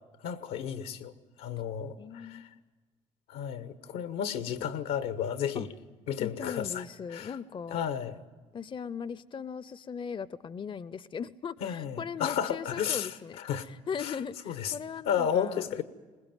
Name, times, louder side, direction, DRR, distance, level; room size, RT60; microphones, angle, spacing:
voice 1, 0.2-1.1 1.4-2.4 3.3-5.7 6.1-6.8 7.1-7.3 7.7-8.2 11.6-13.1 13.4-13.7 14.0-14.1 14.5-14.7 15.1-15.8, left 8 dB, 80° left, 1.3 m, -32 dB
voice 2, 2.0-2.5 5.5-5.7 6.2-7.8 8.5-15.7, left 6 dB, 35° left, 0.7 m, -39 dB
22.0 x 20.0 x 9.1 m
hypercardioid pair, 55°, 14 cm